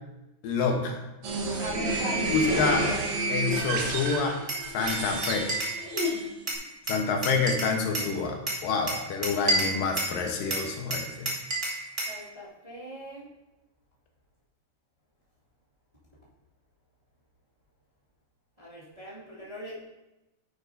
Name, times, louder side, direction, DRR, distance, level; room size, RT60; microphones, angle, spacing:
voice 1, 0.4-1.0 2.3-2.9 3.3-4.4 4.7-5.5 6.9-11.3, left 4 dB, 85° left, 2 dB, 2.7 m, -27 dB
sound 1, 1.2-6.5, right 2 dB, 60° right, 2.2 m, -30 dB
voice 2, 1.6-2.3 12.0-13.3 18.6-19.8, equal, 15° right, -9 dB, 1.7 m, -39 dB
Glass, 4.5-6.2 6.5-8.1 8.5-10.2 10.5-12.2, right 1 dB, 80° right, 0.4 m, -30 dB
9.9 x 8.8 x 2.7 m, 1.0 s
omnidirectional pair, 3.9 m